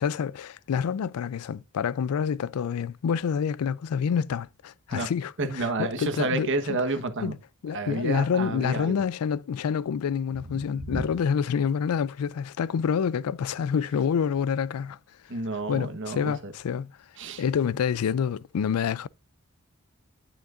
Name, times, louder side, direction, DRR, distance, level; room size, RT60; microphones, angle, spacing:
voice 1, 0.0-6.5 7.2-7.4 7.6-15.0 15.7-16.9 17.4-19.1, left 7 dB, 80° left, 0.4 m, -27 dB
voice 2, 5.4-7.3 7.7-9.0 10.5-10.6 10.9-11.1 15.3-16.5 17.2-17.4, right 2 dB, 60° right, 1.2 m, -30 dB
9.3 x 8.8 x 2.5 m
head